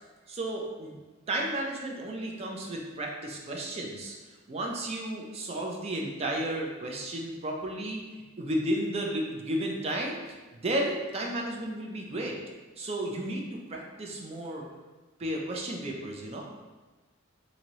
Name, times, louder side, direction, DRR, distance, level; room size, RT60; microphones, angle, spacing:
voice 1, 0.3-1.0 1.3-4.1 4.5-8.0 8.4-10.2 10.5-12.4 12.8-14.6 15.2-16.5, right 1 dB, 30° right, 0 dB, 0.4 m, -33 dB
2.9 x 2.6 x 2.9 m, 1.3 s
head